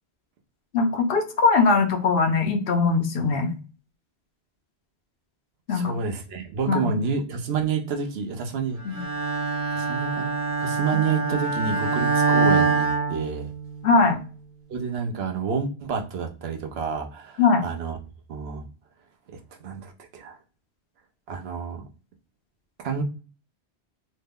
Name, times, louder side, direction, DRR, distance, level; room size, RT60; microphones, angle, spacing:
voice 1, 0.7-3.5 5.7-5.9 6.7-6.9 8.8-9.0 10.9-11.0 13.8-14.2 17.4-17.7, left 4 dB, 65° left, 5 dB, 0.8 m, -21 dB
voice 2, 5.7-8.8 9.7-10.3 10.6-13.5 14.7-18.0 18.3-18.7 19.6-20.4 21.3-21.8 22.8-23.0, right 5 dB, 70° right, 4 dB, 0.9 m, -29 dB
Bowed string instrument, 8.9-13.9, right 4 dB, 35° right, 0.9 m, -24 dB
3.1 x 2.1 x 3.4 m, 0.36 s
omnidirectional pair, 1.1 m